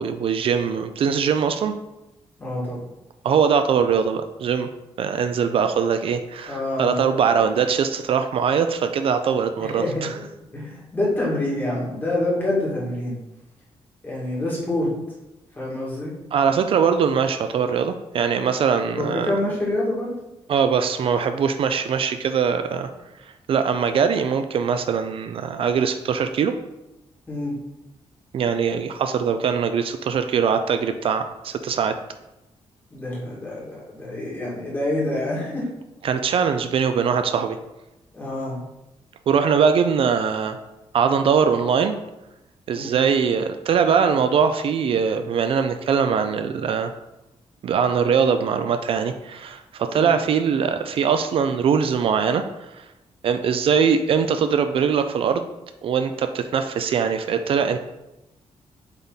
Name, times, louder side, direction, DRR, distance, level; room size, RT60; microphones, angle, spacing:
voice 1, 0.0-1.7 3.2-4.7 5.0-10.1 16.3-19.3 20.5-22.9 23.2-26.5 28.3-31.9 36.0-37.6 39.3-40.6 40.9-41.9 42.7-46.9 47.6-52.7 53.2-55.4 55.8-57.8, right 6 dB, 60° right, 8 dB, 0.4 m, -21 dB
voice 2, 2.4-2.9 6.5-7.0 9.6-10.2 10.5-13.2 14.0-14.9 15.6-16.1 18.9-20.2 27.3-27.5 32.9-35.7 38.1-38.6 42.7-42.9 49.9-50.1, left 1 dB, 15° left, -6 dB, 2.3 m, -26 dB
8.1 x 3.6 x 4.0 m, 0.97 s
wide cardioid pair, 150°, 11 cm